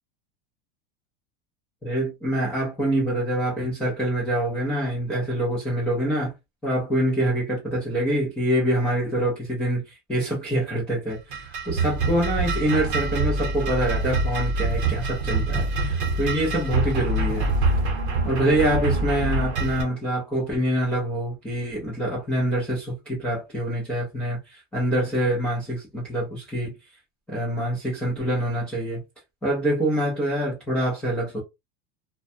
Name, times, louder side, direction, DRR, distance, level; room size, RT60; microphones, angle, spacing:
voice 1, 1.8-6.3 6.6-9.8 10.1-17.5 18.2-26.7 27.3-29.0 29.4-31.4, right 1 dB, 5° left, 0.3 m, -25 dB
sound 1, 11.1-19.8, right 2 dB, 35° right, 0.8 m, -25 dB
2.5 x 2.1 x 2.6 m
supercardioid pair, 175°, 34 cm